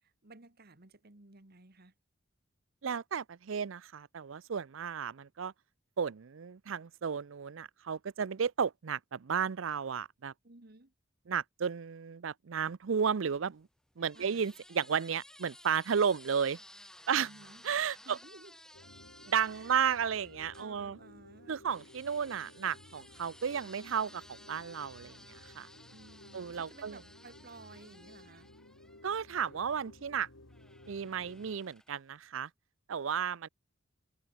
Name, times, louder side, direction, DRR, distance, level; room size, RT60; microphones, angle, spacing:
voice 1, 0.0-1.9 10.4-10.9 14.1-14.5 17.1-17.6 18.1-18.6 19.4-19.8 20.5-21.6 25.9-28.5, right 3 dB, 50° right, 2.0 m, -55 dB
voice 2, 2.8-5.5 6.0-10.3 11.3-13.7 14.0-16.6 17.1-17.3 17.6-18.2 19.3-21.0 21.5-25.7 26.3-27.0 29.0-30.3 30.9-32.5 32.9-33.5, right 7 dB, 70° right, 0.5 m, -33 dB
sound 1, 13.3-20.7 21.7-29.6 30.5-32.1, left 1 dB, 5° left, 1.5 m, -57 dB
sound 2, 18.7-31.6, left 1 dB, 90° left, 4.3 m, -56 dB
head